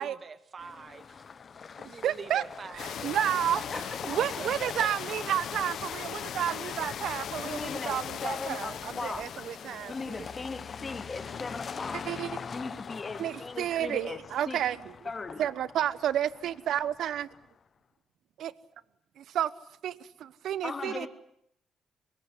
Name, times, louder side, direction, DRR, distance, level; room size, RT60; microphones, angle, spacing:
voice 1, 0.0-1.4 1.8-3.4 3.8-3.9 4.2-4.5 4.8-4.9, right 5 dB, 40° right, 1.9 m, -45 dB
sound 1, 0.6-17.6, left 6 dB, 45° left, 0.9 m, -45 dB
voice 2, 2.0-2.4 3.0-9.9 12.1-12.3 13.2-14.9 15.4-17.3 18.4-18.5 19.2-19.5 19.8-21.1, right 10 dB, 75° right, 1.0 m, -31 dB
sound 2, 2.8-10.8, left 9 dB, 70° left, 1.1 m, -39 dB
voice 3, 3.7-4.2 7.4-9.4 9.9-12.0 12.5-14.2 14.5-14.6 15.0-15.4 20.6-21.1, left 4 dB, 30° left, 2.9 m, -38 dB
sound 3, 3.9-9.5, left 2 dB, 15° left, 3.3 m, -54 dB
23.5 x 21.5 x 9.8 m
cardioid pair, 90°, 0 cm